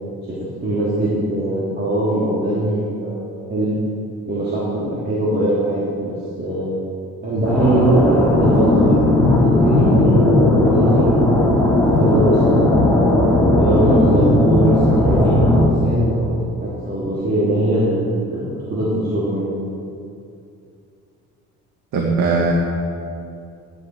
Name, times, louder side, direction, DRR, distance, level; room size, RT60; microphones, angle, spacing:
voice 1, 0.6-3.2 3.5-3.8 4.3-6.7 7.2-11.1 11.6-13.0 13.6-19.5, right 1 dB, 30° right, -9 dB, 3.4 m, -21 dB
sound 1, 7.4-15.7, left 1 dB, 5° left, 3.2 m, -16 dB
voice 2, 21.9-22.5, right 4 dB, 75° right, -1 dB, 1.9 m, -18 dB
16.0 x 11.5 x 4.8 m, 2.5 s
cardioid pair, 105°, 31 cm